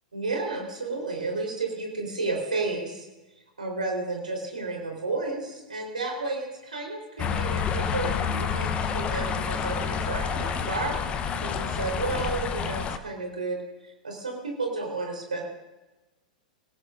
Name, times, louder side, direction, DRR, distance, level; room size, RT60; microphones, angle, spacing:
voice 1, 0.1-3.1 3.6-11.0 11.4-15.4, right 3 dB, 75° right, 1 dB, 3.9 m, -32 dB
sound 1, 7.2-13.0, left 6 dB, 25° left, 0.8 m, -29 dB
27.0 x 16.0 x 2.6 m, 1.1 s
figure-of-eight pair, 95°, 4 cm